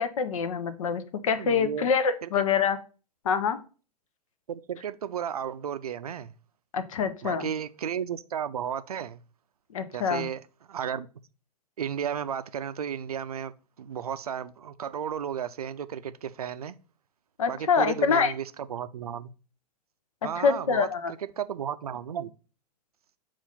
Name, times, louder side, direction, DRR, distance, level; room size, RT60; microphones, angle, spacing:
voice 1, 0.0-2.8 3.2-3.6 6.7-7.5 9.7-10.3 17.4-18.3 20.2-21.1, left 6 dB, 55° left, 0.7 m, -25 dB
voice 2, 1.3-1.9 2.2-2.3 4.5-6.3 7.2-9.2 9.9-10.4 10.7-11.1 11.8-13.5 13.8-16.8 17.5-19.3 20.2-20.9 21.4-22.3, right 8 dB, 65° right, 0.5 m, -33 dB
7.0 x 2.5 x 5.6 m
figure-of-eight pair, 105°, 21 cm